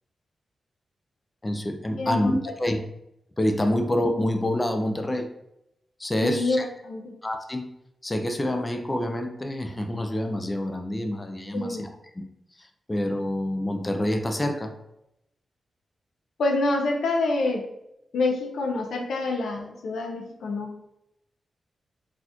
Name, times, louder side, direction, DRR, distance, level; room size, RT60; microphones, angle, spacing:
voice 1, 1.4-2.8 3.4-5.3 6.0-6.7 7.2-7.7 8.0-11.9 12.1-12.3 12.6-14.7, left 1 dB, 20° left, 5 dB, 0.5 m, -27 dB
voice 2, 2.0-2.3 6.2-7.1 11.5-11.8 16.4-17.6 18.1-20.7, left 2 dB, 85° left, 2 dB, 0.6 m, -26 dB
4.1 x 2.5 x 2.8 m, 0.83 s
cardioid pair, 65°, 0 cm